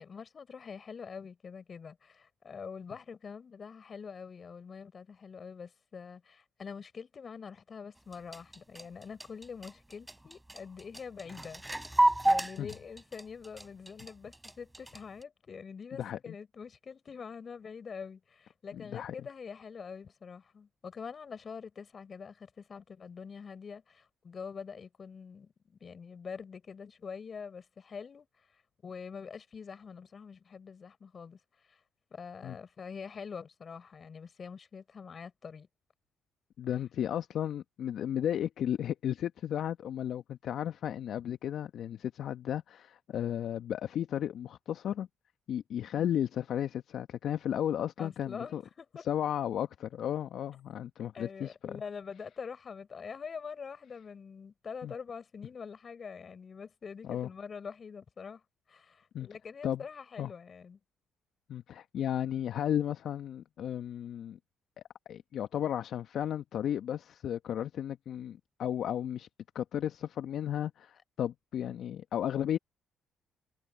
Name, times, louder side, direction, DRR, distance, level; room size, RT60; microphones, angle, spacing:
voice 1, 0.0-28.3 28.8-31.4 31.7-31.8 32.1-35.7 48.0-49.0 51.1-58.4 58.7-60.8, left 6 dB, 45° left, 5.6 m, -45 dB
sound 1, 8.0-15.2, right 1 dB, 10° right, 3.5 m, -31 dB
voice 2, 15.9-16.3 18.7-19.1 32.4-32.6 36.6-45.1 45.5-48.6 49.1-51.7 54.8-54.9 57.0-57.3 59.1-59.3 59.6-59.8 60.2-60.3 61.5-64.4 65.1-69.3 69.5-72.6, left 10 dB, 65° left, 1.2 m, -34 dB
hypercardioid pair, 55°, 0 cm